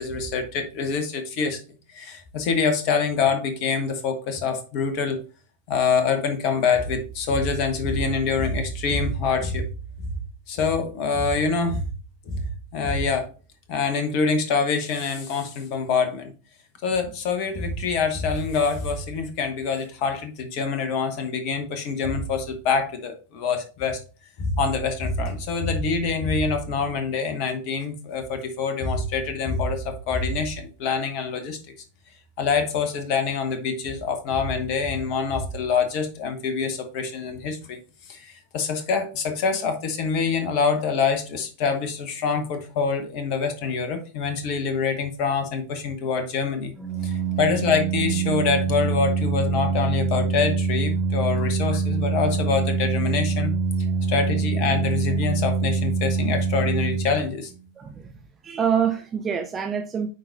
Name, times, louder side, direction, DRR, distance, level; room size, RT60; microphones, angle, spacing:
voice 1, 0.0-1.6 1.9-5.2 5.7-9.7 10.0-10.1 10.5-11.8 12.3-12.4 12.7-13.3 13.7-16.3 16.8-24.0 24.4-31.6 32.4-37.8 38.1-46.7 47.0-53.5 54.1-57.5, left 5 dB, 45° left, 1.2 m, -25 dB
Organ, 46.8-57.6, right 5 dB, 10° left, 1.5 m, -25 dB
voice 2, 46.9-47.4 53.9-54.1 57.8-58.1 58.4-60.1, right 7 dB, 20° right, 0.6 m, -27 dB
9.1 x 3.9 x 2.6 m
figure-of-eight pair, 90°, 0 cm